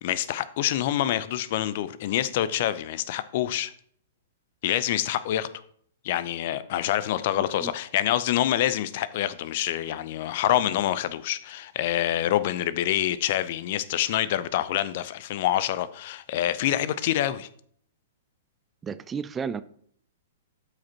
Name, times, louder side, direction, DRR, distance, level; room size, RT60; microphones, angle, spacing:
voice 1, 0.0-3.7 4.6-5.5 6.0-17.5, left 12 dB, 50° left, 0.5 m, -26 dB
voice 2, 18.8-19.6, right 6 dB, 20° right, 0.3 m, -32 dB
12.5 x 5.0 x 2.9 m
figure-of-eight pair, 110°, 0 cm